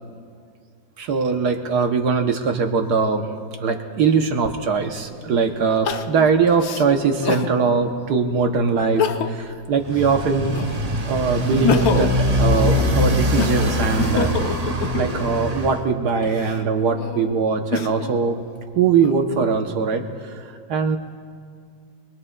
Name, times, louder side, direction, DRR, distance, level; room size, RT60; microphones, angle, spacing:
voice 1, 1.0-3.3 3.6-10.6 11.1-12.1 12.4-14.3 14.6-18.4 18.8-20.0 20.3-20.4 20.7-21.0, right 5 dB, 65° right, 5 dB, 1.2 m, -21 dB
Crying sobbing, 4.5-4.6 5.8-7.5 8.1-8.2 8.8-9.5 9.9-10.9 11.4-15.4 16.1-18.2 18.7-19.6, left 7 dB, 65° left, 0.9 m, -27 dB
Motorcycle, 9.8-15.8, equal, 45° right, 0.5 m, -23 dB
26.0 x 21.0 x 2.2 m, 2.2 s
omnidirectional pair, 2.2 m